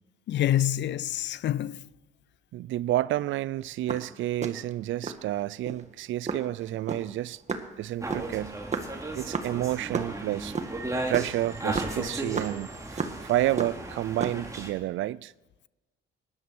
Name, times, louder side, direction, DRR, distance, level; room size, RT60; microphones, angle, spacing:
voice 1, 0.3-1.8, left 12 dB, 65° left, 0.5 m, -26 dB
voice 2, 2.5-7.4 7.8-8.6 9.1-10.6 11.1-15.3, right 14 dB, 75° right, 0.5 m, -30 dB
sound 1, 3.7-5.2 5.7-5.9 6.3-10.1 10.4-13.3 13.6-14.5, right 4 dB, 35° right, 1.7 m, -33 dB
sound 2, 8.0-14.7, right 2 dB, 15° right, 3.2 m, -36 dB
18.5 x 11.5 x 6.2 m
cardioid pair, 90°, 20 cm